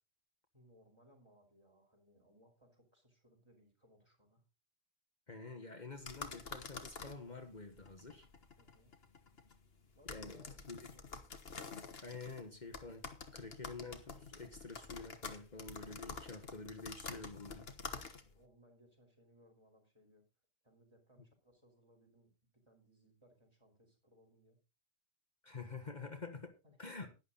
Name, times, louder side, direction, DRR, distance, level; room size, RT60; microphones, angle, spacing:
voice 1, 0.5-4.4 8.6-9.0 9.9-11.3 18.2-20.2 20.6-24.6 26.6-27.0, equal, 25° right, 1 dB, 4.9 m, -67 dB
voice 2, 5.3-8.3 10.1-10.4 10.7-10.8 12.0-17.7 25.4-26.5 26.8-27.1, left 4 dB, 45° left, 5 dB, 1.6 m, -48 dB
sound 1, 6.0-18.4, left 4 dB, 65° left, 1.6 m, -49 dB
11.5 x 11.0 x 4.1 m, 0.29 s
omnidirectional pair, 1.1 m